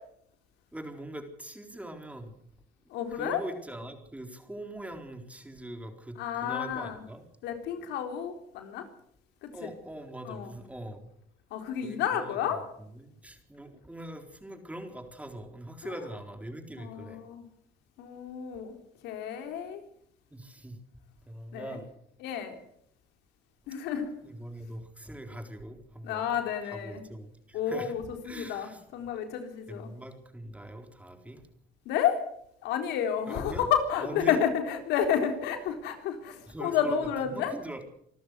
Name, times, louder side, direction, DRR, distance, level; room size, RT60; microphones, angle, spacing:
voice 1, 0.7-2.4 3.1-7.2 9.5-11.1 11.8-12.6 12.9-17.2 20.3-20.8 21.2-21.9 24.2-26.3 26.6-28.0 28.2-28.8 29.7-31.4 33.3-33.7 34.0-34.4 36.5-37.8, right 1 dB, 10° right, 5 dB, 4.1 m, -42 dB
voice 2, 2.9-3.4 6.2-7.0 7.4-8.9 9.4-9.7 10.2-10.5 11.5-12.6 15.8-15.9 16.8-17.5 18.0-18.7 19.0-19.8 21.5-21.8 22.2-22.6 23.7-24.1 26.0-27.0 27.5-29.9 31.9-32.2 32.6-37.5, left 8 dB, 85° left, 6 dB, 3.9 m, -31 dB
26.0 x 13.5 x 8.1 m, 0.71 s
cardioid pair, 110°, 17 cm